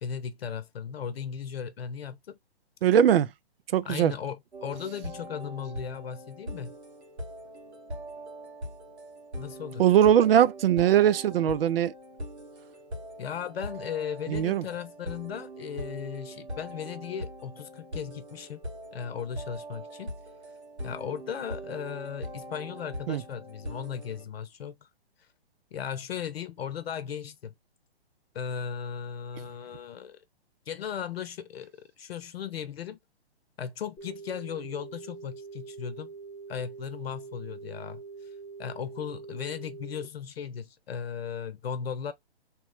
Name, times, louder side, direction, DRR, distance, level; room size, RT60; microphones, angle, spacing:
voice 1, 0.0-2.4 3.9-6.7 9.4-9.8 13.2-18.6 18.9-20.1 20.8-24.8 25.7-27.5 28.3-30.2 30.7-33.0 33.6-36.1 36.5-38.0 38.6-42.1, left 8 dB, 65° left, 0.8 m, -36 dB
voice 2, 2.8-3.3 3.7-4.1 9.8-11.9 14.3-14.6 23.1-23.2, right 10 dB, 65° right, 0.4 m, -21 dB
sound 1, 4.5-24.2, equal, 85° right, 1.5 m, -41 dB
sound 2, 34.0-40.1, right 5 dB, 15° left, 0.7 m, -44 dB
3.0 x 2.2 x 2.9 m
hypercardioid pair, 135°, 32 cm